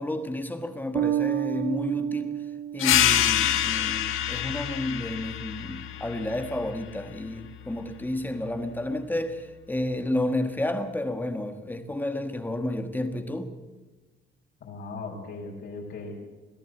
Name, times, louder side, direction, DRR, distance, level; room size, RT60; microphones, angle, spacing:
voice 1, 0.0-2.4 2.7-13.5, left 1 dB, 10° left, 1.4 m, -31 dB
Bass guitar, 1.0-3.6, right 12 dB, 65° right, 1.0 m, -30 dB
sound 1, 2.8-8.0, left 11 dB, 85° left, 1.7 m, -27 dB
voice 2, 14.6-16.2, left 3 dB, 60° left, 5.2 m, -38 dB
22.0 x 15.0 x 8.1 m
cardioid pair, 165°, 20 cm